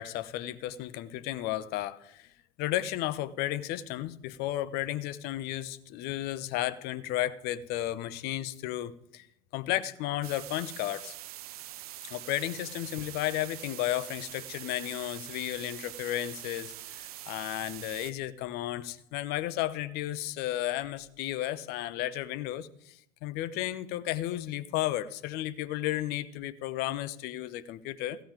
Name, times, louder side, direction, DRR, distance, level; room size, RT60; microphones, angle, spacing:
voice 1, 0.0-2.3 2.6-9.3 9.5-11.1 12.0-28.2, left 14 dB, 55° left, 15 dB, 1.1 m, -33 dB
sound 1, 10.2-18.1, right 14 dB, 75° right, 0.7 m, -44 dB
15.5 x 5.6 x 9.0 m, 0.75 s
hypercardioid pair, 75°, 19 cm